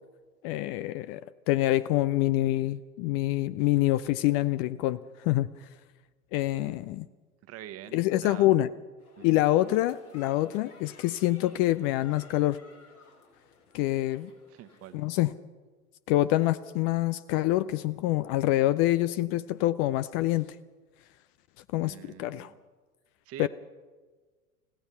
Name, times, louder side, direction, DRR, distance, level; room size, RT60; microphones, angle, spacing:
voice 1, 0.4-1.2 1.5-5.5 6.3-7.1 7.9-8.7 9.2-12.6 13.7-14.3 14.9-15.3 16.1-20.6 21.7-22.5 23.4-23.5, left 16 dB, 30° left, 13 dB, 0.5 m, -26 dB
voice 2, 6.5-7.0 7.4-8.5 9.2-9.4 14.5-15.1 21.8-22.6 23.2-23.5, right 12 dB, 35° right, 11 dB, 1.4 m, -46 dB
sound 1, 9.0-15.2, left 3 dB, 90° left, 4.7 m, -56 dB
30.0 x 16.0 x 5.7 m, 1.4 s
figure-of-eight pair, 90°, 43 cm